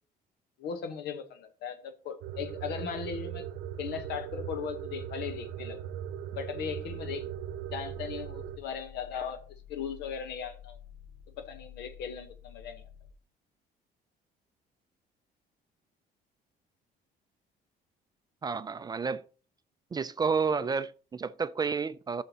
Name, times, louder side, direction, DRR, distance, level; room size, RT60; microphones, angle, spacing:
voice 1, 0.6-3.5 3.8-5.8 6.3-7.3 7.7-9.4 9.7-10.8 11.4-12.8, left 7 dB, 75° left, 1.1 m, -38 dB
sound 1, 2.2-8.6, right 10 dB, 75° right, 0.8 m, -39 dB
sound 2, 6.7-13.1, left 10 dB, 45° left, 1.0 m, -51 dB
voice 2, 18.4-19.2 19.9-22.2, right 5 dB, 25° right, 0.4 m, -30 dB
13.5 x 6.6 x 2.8 m
cardioid pair, 110°, 17 cm